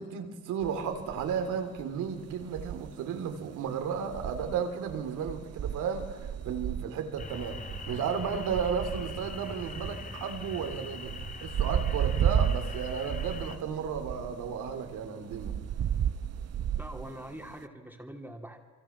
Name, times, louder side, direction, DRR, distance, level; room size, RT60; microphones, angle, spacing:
voice 1, 0.0-7.6 7.9-11.1 11.4-15.5, right 6 dB, 90° right, 6 dB, 3.3 m, -34 dB
sound 1, 0.6-17.7, right 9 dB, 55° right, 0.8 m, -34 dB
sound 2, 7.2-13.6, left 3 dB, 25° left, 2.4 m, -42 dB
voice 2, 16.8-18.6, right 1 dB, 5° right, 3 dB, 2.8 m, -43 dB
27.5 x 23.5 x 7.4 m, 1.5 s
cardioid pair, 90°, 30 cm